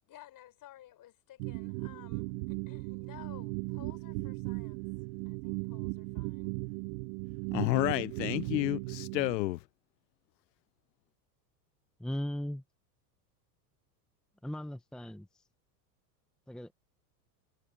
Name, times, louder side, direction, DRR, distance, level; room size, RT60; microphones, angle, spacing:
voice 1, 0.1-4.9 5.2-6.6, left 13 dB, 40° left, 6.7 m, -55 dB
sound 1, 1.4-9.3, right 25 dB, 65° right, 0.9 m, -37 dB
voice 2, 7.5-9.6, left 18 dB, 90° left, 0.6 m, -30 dB
voice 3, 12.0-12.6 14.4-15.4 16.5-16.7, left 1 dB, ahead, 1.0 m, -38 dB
hypercardioid pair, 110°, 49 cm